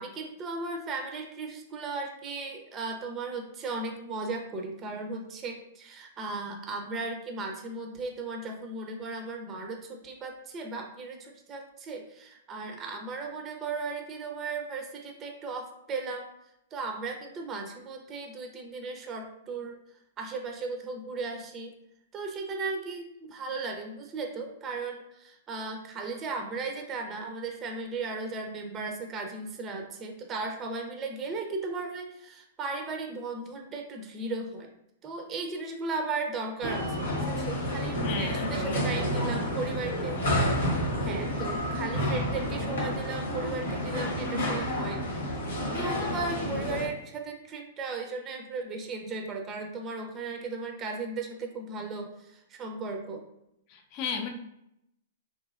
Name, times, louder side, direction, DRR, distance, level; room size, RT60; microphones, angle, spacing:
voice 1, 0.0-16.3 16.7-19.8 20.2-21.7 22.1-34.7 35.0-40.2 41.0-45.2 45.6-53.2, right 3 dB, 25° right, 3 dB, 0.5 m, -36 dB
sound 1, 36.6-46.9, equal, 85° left, 1.1 m, -30 dB
voice 2, 38.0-39.1 53.7-54.3, left 5 dB, 40° left, 3 dB, 0.5 m, -35 dB
3.0 x 2.6 x 2.4 m, 0.80 s
hypercardioid pair, 130°, 0 cm